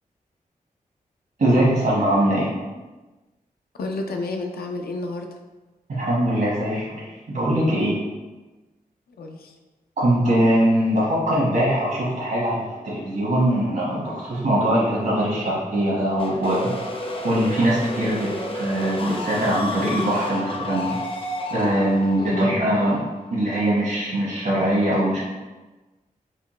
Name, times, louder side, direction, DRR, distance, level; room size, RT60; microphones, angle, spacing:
voice 1, 1.4-2.5 5.9-7.9 10.0-16.7 17.2-18.3 18.5-20.9 21.5-23.0 23.3-25.2, right 1 dB, 75° right, -8 dB, 1.1 m, -22 dB
voice 2, 3.8-5.4 9.2-9.6 22.2-22.5, left 2 dB, 90° left, 3 dB, 0.4 m, -31 dB
sound 1, 16.2-23.9, left 1 dB, 35° left, 0.5 m, -31 dB
4.3 x 2.2 x 3.1 m, 1.2 s
cardioid pair, 60°, 15 cm